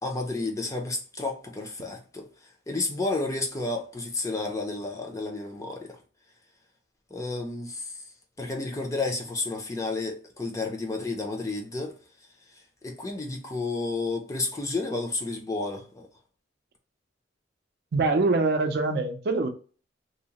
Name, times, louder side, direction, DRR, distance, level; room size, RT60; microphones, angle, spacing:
voice 1, 0.0-2.3 2.7-6.0 7.1-7.9 8.4-11.9 12.8-16.1, left 3 dB, 15° left, 0.4 m, -31 dB
voice 2, 17.9-19.5, right 3 dB, 60° right, 0.4 m, -24 dB
2.7 x 2.0 x 2.8 m
head